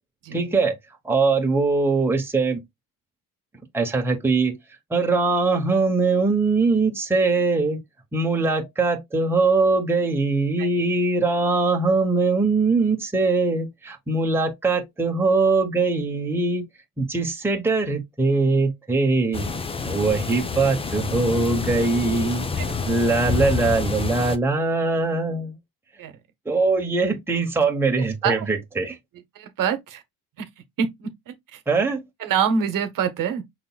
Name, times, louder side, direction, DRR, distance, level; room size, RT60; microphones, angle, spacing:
voice 1, 0.3-0.8 1.0-2.6 3.7-4.6 4.9-7.8 8.1-16.6 17.0-19.5 19.8-22.5 22.8-25.6 26.4-29.0 31.7-32.0, right 3 dB, 5° right, 1.0 m, -22 dB
sound 1, 19.3-24.4, left 5 dB, 15° left, 0.4 m, -28 dB
voice 2, 29.4-30.0 30.8-31.6 32.2-33.4, right 7 dB, 50° right, 1.0 m, -25 dB
5.7 x 3.8 x 2.3 m
cardioid pair, 120°, 41 cm